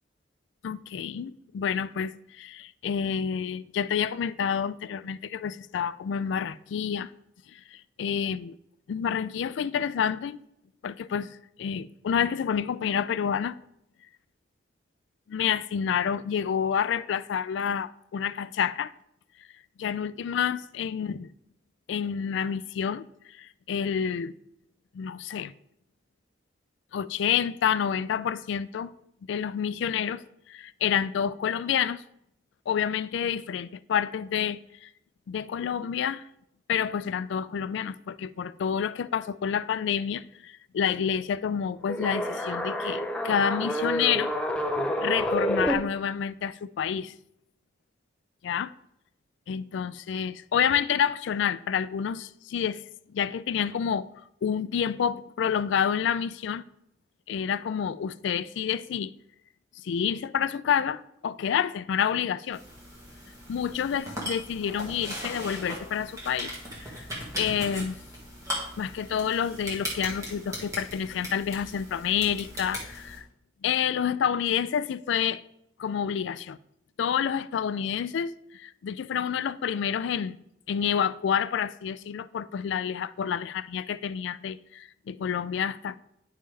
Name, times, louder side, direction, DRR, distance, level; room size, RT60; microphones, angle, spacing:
voice 1, 0.6-7.1 7.5-8.6 8.9-10.4 10.8-11.3 11.6-13.5 15.3-18.9 19.8-21.3 21.9-23.1 23.4-24.4 24.9-25.5 26.9-28.9 29.3-30.2 30.5-32.0 32.7-34.9 35.3-36.2 36.7-44.3 45.0-47.1 48.4-48.7 49.5-52.8 53.1-54.1 54.4-56.6 57.3-59.1 59.8-62.6 63.5-66.5 66.9-67.1 67.4-68.0 68.8-73.3 73.6-75.4 75.8-76.6 77.0-80.4 80.7-86.0, left 8 dB, 70° left, 0.3 m, -28 dB
sound 1, 41.9-45.7, equal, 5° left, 0.5 m, -28 dB
sound 2, 62.5-73.2, equal, 15° right, 1.7 m, -38 dB
9.8 x 5.5 x 3.3 m
head